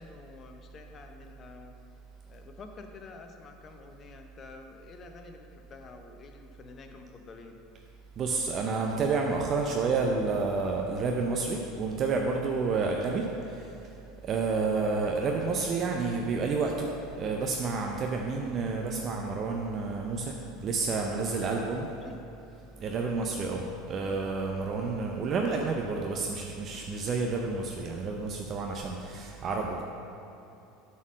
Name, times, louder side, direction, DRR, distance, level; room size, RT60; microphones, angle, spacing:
voice 1, 0.0-1.7 2.3-7.6 21.1-21.6 22.0-22.2, left 4 dB, 35° left, 4 dB, 0.8 m, -48 dB
voice 2, 8.2-13.9 14.2-21.9 22.8-29.8, right 4 dB, 40° right, 1 dB, 0.6 m, -30 dB
7.1 x 4.3 x 6.4 m, 2.8 s
hypercardioid pair, 85°, 0 cm